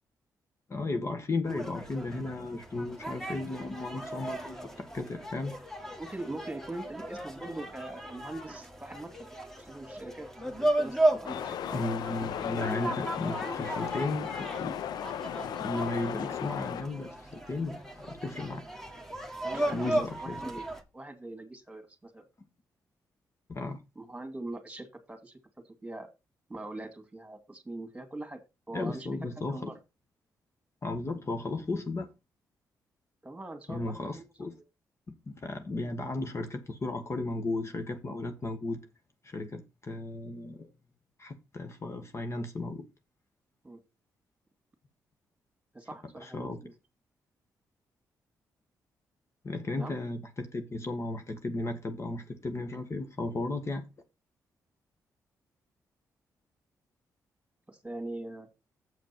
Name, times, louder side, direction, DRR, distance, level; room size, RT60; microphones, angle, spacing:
voice 1, 0.7-5.5 11.7-14.7 15.6-18.6 19.7-20.4 23.5-23.8 28.7-29.7 30.8-32.1 33.7-34.6 35.3-38.8 39.2-40.7 41.2-42.9 46.2-46.6 49.4-53.8, left 2 dB, 40° left, 1.5 m, -35 dB
sound 1, 1.5-20.8, right 1 dB, 5° left, 1.9 m, -35 dB
voice 2, 6.0-9.3 9.6-11.9 19.4-20.6 20.9-22.3 24.0-25.4 25.8-26.1 26.5-28.4 28.7-29.1 29.4-29.8 33.2-34.6 43.6-43.8 45.7-46.7 49.8-49.9 57.7-58.5, right 2 dB, 15° right, 2.5 m, -42 dB
sound 2, 11.2-16.8, left 10 dB, 75° left, 0.4 m, -36 dB
7.9 x 5.1 x 5.9 m
cardioid pair, 65°, 7 cm